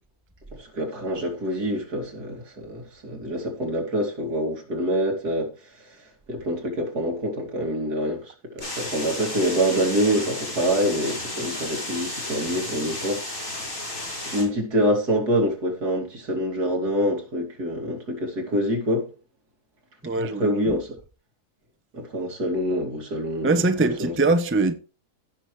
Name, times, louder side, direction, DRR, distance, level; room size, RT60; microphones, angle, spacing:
voice 1, 0.6-5.5 6.3-13.3 14.3-19.1 20.2-21.0 21.9-23.5 23.8-24.1, equal, 75° right, 3.3 m, -26 dB
sound 1, 8.6-14.4, left 1 dB, 60° left, 6.2 m, -33 dB
voice 2, 20.0-20.7 23.4-24.7, right 3 dB, 10° right, 0.6 m, -22 dB
16.0 x 6.2 x 3.2 m
omnidirectional pair, 1.7 m